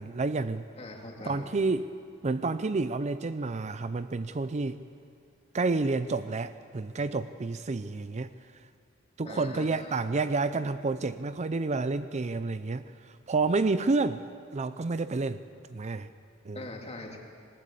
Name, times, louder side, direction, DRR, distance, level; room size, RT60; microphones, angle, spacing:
voice 1, 0.0-0.6 1.3-1.9 2.2-4.8 5.5-8.3 9.2-14.2 14.5-15.4 15.7-16.1 16.4-16.6, right 3 dB, 35° right, 12 dB, 0.5 m, -29 dB
voice 2, 0.8-1.5 9.2-10.0 16.5-17.2, left 2 dB, 30° left, 1 dB, 2.6 m, -42 dB
20.0 x 19.5 x 8.3 m, 2.3 s
head